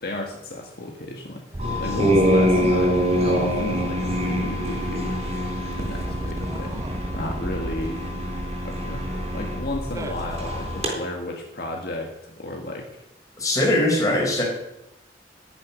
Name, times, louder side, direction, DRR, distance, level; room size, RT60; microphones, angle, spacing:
voice 1, 0.0-5.1 5.8-6.9 7.2-8.0 8.6-9.1 9.3-13.0, left 1 dB, 55° left, 1 dB, 1.6 m, -33 dB
sound 1, 1.5-10.9, right 1 dB, 15° right, 0.5 m, -33 dB
sound 2, 1.6-10.9, equal, 35° right, 3.6 m, -25 dB
voice 2, 13.4-14.4, left 1 dB, 20° left, -1 dB, 4.1 m, -21 dB
11.5 x 7.0 x 9.6 m, 0.87 s
head